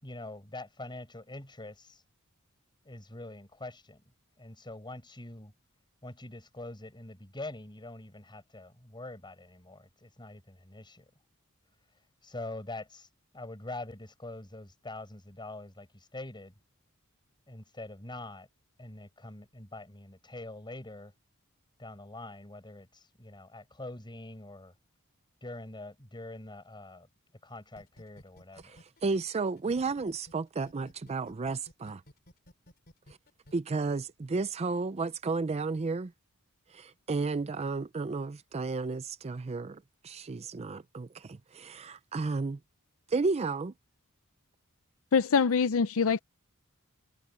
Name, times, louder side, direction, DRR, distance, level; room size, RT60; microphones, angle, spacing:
voice 1, 0.0-2.0 2.8-4.0 4.4-5.5 6.0-11.1 12.2-13.1 13.3-16.5 17.5-18.5 18.8-21.1 21.8-24.7 25.4-27.1 27.4-28.8, left 2 dB, 20° left, 5.0 m, -44 dB
sound 1, 27.8-30.3 30.7-33.5, equal, 45° left, 3.6 m, -55 dB
voice 2, 28.6-32.0 33.5-36.1 36.7-42.6 43.1-43.7, right 4 dB, 30° right, 0.4 m, -33 dB
voice 3, 45.1-46.2, left 5 dB, 65° left, 0.6 m, -24 dB
head